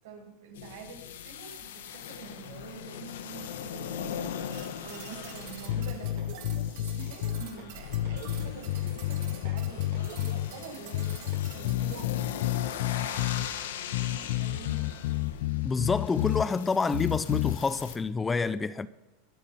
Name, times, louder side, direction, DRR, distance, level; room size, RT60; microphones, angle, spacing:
voice 1, 0.0-14.9, right 5 dB, 80° right, 6.1 m, -47 dB
sound 1, 0.5-18.0, left 8 dB, 85° left, 1.4 m, -40 dB
sound 2, 4.5-12.0, right 8 dB, 60° right, 2.4 m, -46 dB
sound 3, 5.7-7.5 7.9-10.5 10.9-13.5 13.9-16.5 16.9-17.6, left 15 dB, 70° left, 0.5 m, -30 dB
voice 2, 15.6-18.9, left 4 dB, 15° left, 0.5 m, -28 dB
23.0 x 7.7 x 5.8 m
supercardioid pair, 125°, 0 cm